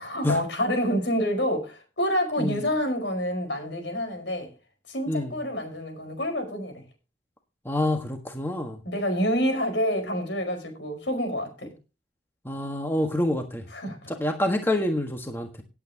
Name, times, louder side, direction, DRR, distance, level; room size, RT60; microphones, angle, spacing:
voice 1, 0.0-4.5 4.9-6.8 8.8-11.7 13.7-14.1, equal, 80° left, 5 dB, 4.8 m, -28 dB
voice 2, 7.6-8.8 12.4-13.7 14.1-15.6, left 1 dB, 15° left, 4 dB, 1.5 m, -27 dB
18.5 x 8.6 x 2.9 m, 0.30 s
head